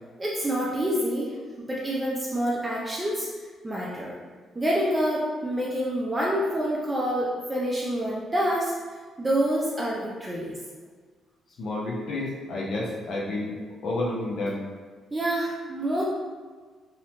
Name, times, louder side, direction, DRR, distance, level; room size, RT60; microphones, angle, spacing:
voice 1, 0.2-3.3 3.6-4.2 4.6-8.7 9.2-10.5 15.1-16.0, equal, 20° right, -5 dB, 0.4 m, -27 dB
voice 2, 11.6-14.6, left 2 dB, 65° left, -4 dB, 0.5 m, -30 dB
2.7 x 2.0 x 2.9 m, 1.5 s
cardioid pair, 90°, 0 cm